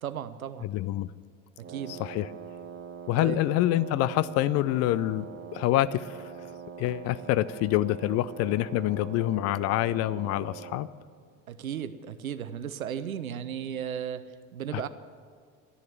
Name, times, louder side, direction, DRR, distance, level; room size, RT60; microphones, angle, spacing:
voice 1, 0.0-0.7 1.6-2.0 3.2-3.4 11.5-14.9, right 9 dB, 80° right, 13 dB, 0.8 m, -35 dB
voice 2, 0.6-1.1 2.0-2.3 3.1-5.3 5.5-6.2 6.8-10.9 14.7-14.8, left 14 dB, 40° left, 18 dB, 0.4 m, -26 dB
Wind instrument woodwind instrument, 1.6-10.9, right 7 dB, 25° right, 1.0 m, -43 dB
12.5 x 10.5 x 8.1 m, 2.1 s
figure-of-eight pair, 70°, 41 cm